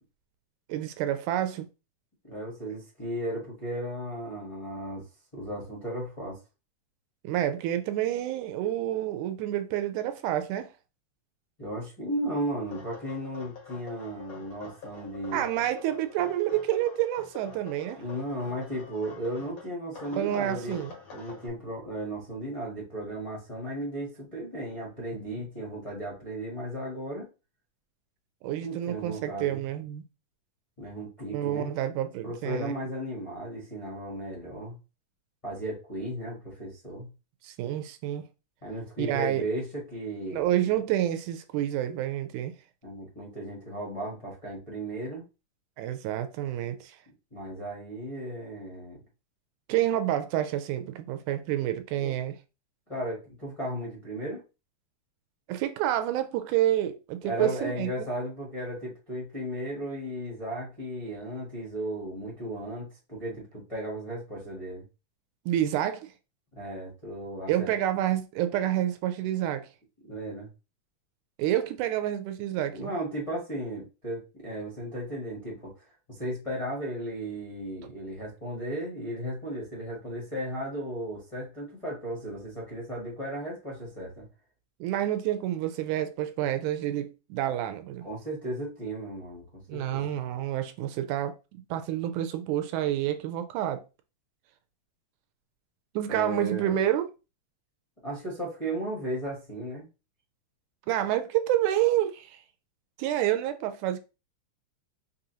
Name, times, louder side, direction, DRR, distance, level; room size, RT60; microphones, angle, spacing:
voice 1, 0.7-1.7 7.2-10.7 15.3-18.0 20.1-20.9 28.4-30.0 31.3-32.7 37.4-38.2 39.0-39.4 40.3-42.5 45.8-47.0 49.7-52.3 55.5-58.1 65.5-66.1 67.5-69.7 71.4-72.9 84.8-88.1 89.7-91.4 91.7-93.8 96.0-97.1 100.9-102.4 103.0-104.0, right 12 dB, 80° right, 1.9 m, -28 dB
voice 2, 2.2-5.0 5.3-6.4 11.6-15.4 18.0-20.8 21.1-27.3 28.6-29.6 30.8-31.8 32.2-34.8 35.4-37.1 38.6-40.5 42.8-45.2 47.3-49.0 52.0-52.1 52.9-54.4 57.2-64.8 66.5-67.7 70.0-70.5 72.7-75.7 76.1-84.3 88.0-90.1 96.1-96.8 98.0-99.9, right 1 dB, 65° left, 0.3 m, -35 dB
sound 1, 12.7-19.7 19.9-21.5, left 5 dB, 85° left, 0.7 m, -47 dB
5.3 x 2.6 x 2.8 m
omnidirectional pair, 3.6 m